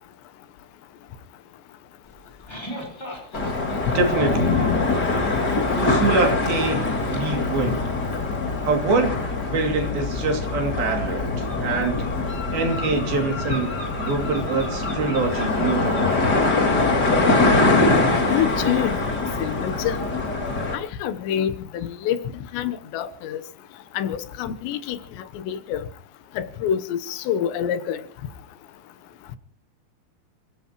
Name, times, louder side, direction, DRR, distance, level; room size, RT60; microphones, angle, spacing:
sound 1, 2.1-7.2, equal, 5° left, 4.3 m, -36 dB
sound 2, 3.3-20.8, left 3 dB, 30° left, 2.5 m, -23 dB
voice 1, 3.9-4.6 5.7-7.8 8.6-9.2 9.5-12.0 12.5-13.7 14.0-16.2, right 3 dB, 60° right, 4.3 m, -25 dB
voice 2, 18.2-18.9 19.4-20.0 20.7-22.2 22.5-23.4 23.9-25.0 25.4-25.8 26.4-28.0, left 9 dB, 90° left, 3.3 m, -26 dB
28.0 x 16.5 x 3.0 m
omnidirectional pair, 4.9 m